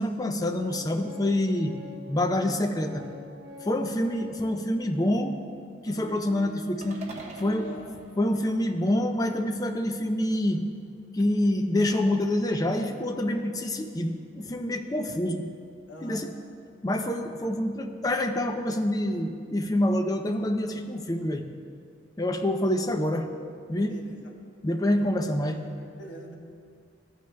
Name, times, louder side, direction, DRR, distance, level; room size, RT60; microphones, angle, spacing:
voice 1, 0.0-1.7 2.1-3.0 3.6-5.4 5.8-7.0 7.4-7.7 8.2-10.7 11.1-15.5 16.0-16.3 16.8-21.4 22.2-23.3 23.7-23.9 24.6-25.6, left 1 dB, 20° left, 6 dB, 0.5 m, -26 dB
Organ, 0.7-4.6 5.3-5.4 5.8-8.0, left 1 dB, 55° right, 0.6 m, -45 dB
sound 1, 6.8-9.1, right 2 dB, 40° right, 1.2 m, -45 dB
voice 2, 15.9-16.3 23.9-24.2 25.0-25.3 25.6-26.3, equal, 75° left, 1 dB, 1.2 m, -44 dB
14.5 x 9.4 x 2.2 m, 2.3 s
head